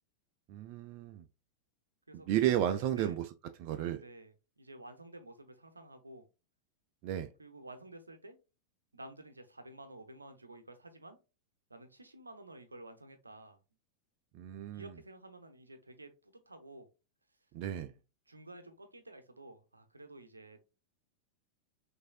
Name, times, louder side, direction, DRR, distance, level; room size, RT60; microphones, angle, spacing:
voice 1, 0.5-1.2 2.3-3.3 3.6-4.0 7.0-7.3 14.3-14.9 17.5-17.9, right 11 dB, 45° right, 0.4 m, -32 dB
voice 2, 2.1-2.5 3.0-3.2 4.0-6.2 7.4-8.4 8.9-11.2 11.7-13.6 14.7-16.9 18.3-20.6, right 1 dB, 80° right, 0.7 m, -52 dB
6.1 x 2.6 x 2.4 m
figure-of-eight pair, 90°, 0 cm